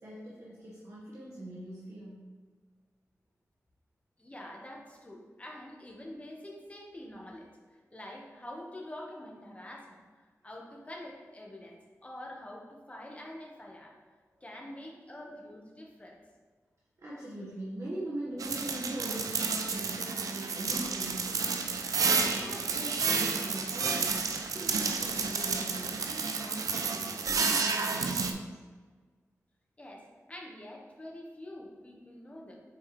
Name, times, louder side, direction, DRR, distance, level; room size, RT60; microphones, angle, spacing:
voice 1, 0.0-2.3 14.3-15.0 17.0-21.8 22.4-28.6, right 1 dB, 60° right, -7 dB, 1.5 m, -42 dB
voice 2, 4.2-7.5 7.9-10.0 10.4-13.9 14.4-16.2 29.8-32.5, left 1 dB, 25° left, -2 dB, 1.4 m, -46 dB
sound 1, 18.4-28.3, right 4 dB, 90° right, 0.5 m, -31 dB
7.2 x 4.7 x 3.3 m, 1.5 s
cardioid pair, 55°, 6 cm